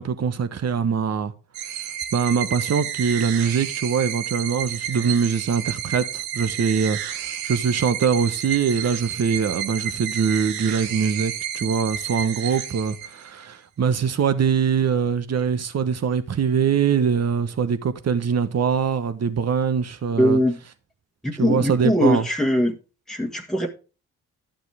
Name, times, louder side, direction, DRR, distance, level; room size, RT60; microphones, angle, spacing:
voice 1, 0.0-1.3 2.1-20.4 21.4-22.3, right 6 dB, 45° right, 1.1 m, -23 dB
sound 1, 1.5-13.5, right 9 dB, 85° right, 0.9 m, -31 dB
voice 2, 20.2-20.6 21.2-22.8 23.1-23.7, equal, ahead, 1.6 m, -21 dB
11.5 x 7.4 x 3.5 m
supercardioid pair, 55°, 35 cm